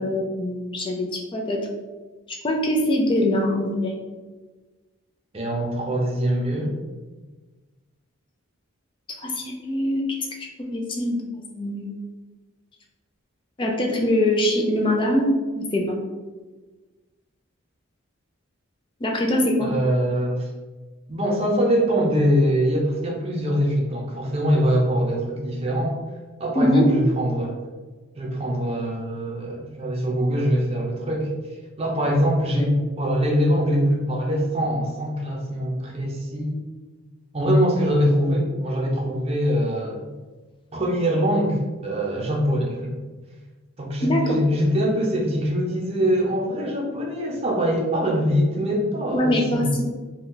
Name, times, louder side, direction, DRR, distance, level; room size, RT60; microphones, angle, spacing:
voice 1, 0.0-1.6 2.4-4.0 9.2-10.1 10.4-11.9 13.6-15.3 15.6-16.0 19.0-19.7 26.6-26.9 32.6-32.7 44.0-44.4 49.1-49.8, left 1 dB, 25° left, 1 dB, 0.4 m, -23 dB
voice 2, 5.3-6.7 19.6-20.5 21.1-26.0 26.4-27.6 28.1-31.3 31.8-36.6 37.3-40.0 40.7-42.9 43.8-49.8, equal, 30° right, -2 dB, 0.6 m, -23 dB
2.8 x 2.3 x 3.6 m, 1.3 s
head